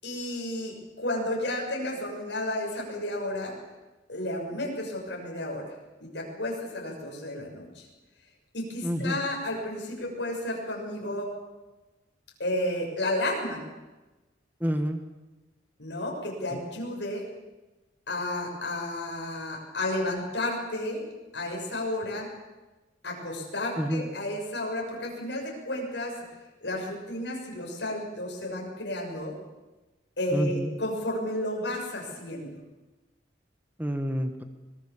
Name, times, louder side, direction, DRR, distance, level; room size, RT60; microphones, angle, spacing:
voice 1, 0.0-3.5 4.1-5.7 6.0-7.9 8.5-11.3 12.4-13.6 15.8-17.2 18.1-21.0 21.3-22.3 23.0-26.1 26.6-29.3 30.2-32.5, left 1 dB, 70° left, -1 dB, 6.9 m, -32 dB
voice 2, 8.8-9.2 14.6-15.0 16.5-16.6 23.8-24.1 30.3-30.7 33.8-34.4, equal, 10° right, 7 dB, 1.5 m, -28 dB
24.5 x 20.5 x 7.3 m, 1.1 s
head